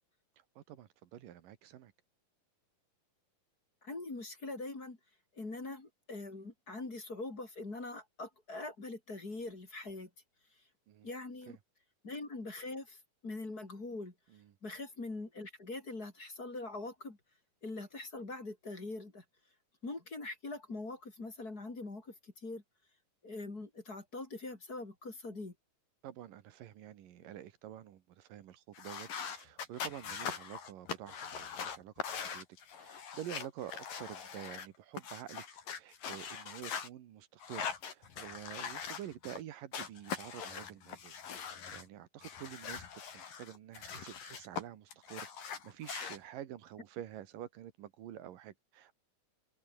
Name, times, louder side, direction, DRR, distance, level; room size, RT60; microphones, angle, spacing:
voice 1, 0.6-1.9 10.9-11.1 11.5-11.6 14.3-14.4 26.0-32.5 32.8-35.4 35.7-42.9 43.1-49.0, right 11 dB, 80° right, 3.2 m, -48 dB
voice 2, 3.8-5.0 5.3-10.1 10.6-10.7 11.0-11.6 12.0-14.1 14.6-17.2 17.6-19.2 19.8-22.6 23.2-25.5, left 2 dB, 25° left, 3.9 m, -43 dB
sound 1, 28.7-34.7 34.9-36.9 37.4-39.4 39.7-41.9 42.2-44.6 44.9-46.2, left 7 dB, 80° left, 5.1 m, -42 dB
omnidirectional pair, 3.9 m